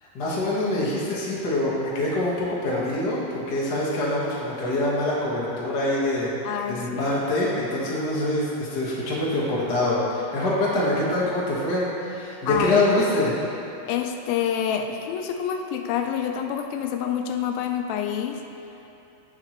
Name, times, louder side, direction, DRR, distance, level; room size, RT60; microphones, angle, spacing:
voice 1, 0.0-6.3 6.7-13.3, left 1 dB, 60° left, -7 dB, 1.0 m, -25 dB
voice 2, 6.5-7.1 12.5-12.9 13.9-18.4, left 8 dB, 80° left, 5 dB, 2.2 m, -27 dB
16.0 x 5.8 x 3.1 m, 2.8 s
omnidirectional pair, 4.4 m